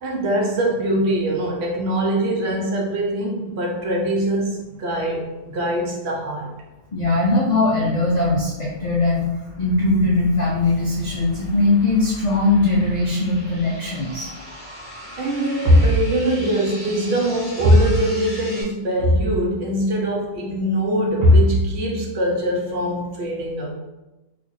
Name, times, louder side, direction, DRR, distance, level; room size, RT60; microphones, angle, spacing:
voice 1, 0.0-6.5 15.2-23.7, equal, 65° right, 0 dB, 0.8 m, -21 dB
voice 2, 6.9-9.3 9.6-14.3, left 2 dB, 65° left, -3 dB, 0.4 m, -20 dB
sound 1, 8.1-18.6, equal, 10° left, 1.0 m, -40 dB
2.9 x 2.5 x 3.8 m, 1.0 s
omnidirectional pair, 1.3 m